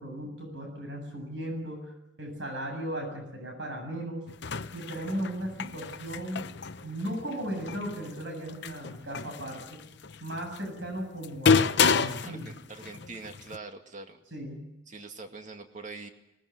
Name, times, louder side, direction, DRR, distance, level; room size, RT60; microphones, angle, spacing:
voice 1, 0.0-1.9 2.2-4.2 4.7-6.5 6.8-9.8 10.2-12.5 14.3-14.6, right 1 dB, 75° right, 4 dB, 7.8 m, -36 dB
sound 1, 4.3-13.6, left 5 dB, 65° left, 0.8 m, -30 dB
voice 2, 12.2-14.2 14.9-16.1, right 3 dB, 40° right, 5 dB, 2.2 m, -43 dB
20.5 x 19.5 x 9.4 m, 0.89 s
head